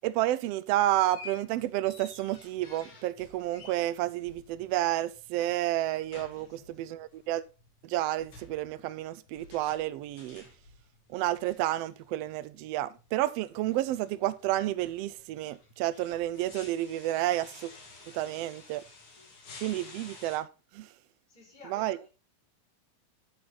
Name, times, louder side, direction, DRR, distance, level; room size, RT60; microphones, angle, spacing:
voice 1, 0.0-7.4 7.8-10.4 11.1-17.7 18.1-18.8 19.6-20.5 20.7-20.9 21.7-22.0, right 14 dB, 90° right, 1.4 m, -30 dB
sound 1, 0.8-20.4, left 3 dB, 75° left, 4.2 m, -52 dB
voice 2, 6.3-7.0 18.0-18.7 19.2-19.3 21.3-22.1, left 2 dB, 15° left, 5.2 m, -56 dB
10.5 x 7.1 x 3.9 m
omnidirectional pair, 3.5 m